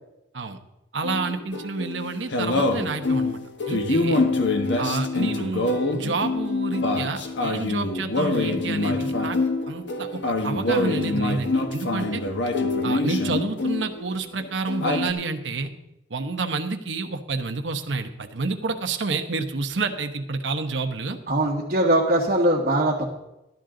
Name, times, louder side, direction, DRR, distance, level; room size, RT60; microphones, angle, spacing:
voice 1, 0.9-3.4 3.7-4.2 4.8-9.4 9.7-12.2 12.8-15.7 16.1-21.2, right 3 dB, 85° right, 6 dB, 1.0 m, -29 dB
sound 1, 1.0-14.1 14.4-15.1, left 2 dB, 80° left, 1.4 m, -25 dB
voice 2, 21.3-23.1, right 1 dB, 45° right, -4 dB, 1.4 m, -21 dB
14.5 x 12.0 x 3.8 m, 0.91 s
head